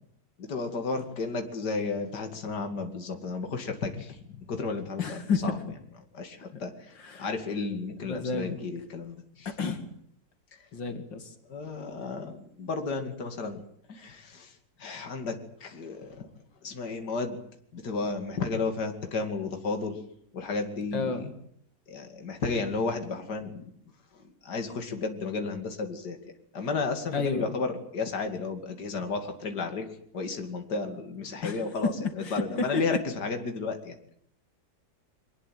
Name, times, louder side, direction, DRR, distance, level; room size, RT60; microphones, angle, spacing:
voice 1, 0.4-5.6 6.1-9.5 11.5-13.6 13.9-16.3 16.6-17.4 17.7-20.0 20.3-21.3 21.9-23.7 24.1-26.2 26.5-29.9 30.1-34.2, left 4 dB, 65° left, 6 dB, 3.0 m, -33 dB
voice 2, 5.0-5.4 6.5-6.6 7.0-7.3 8.0-8.6 9.4-9.8 10.7-11.3 20.9-21.3 27.1-27.4 31.4-31.6 32.0-32.8, left 4 dB, 85° left, 7 dB, 3.0 m, -31 dB
24.0 x 19.5 x 9.1 m, 0.67 s
omnidirectional pair, 1.9 m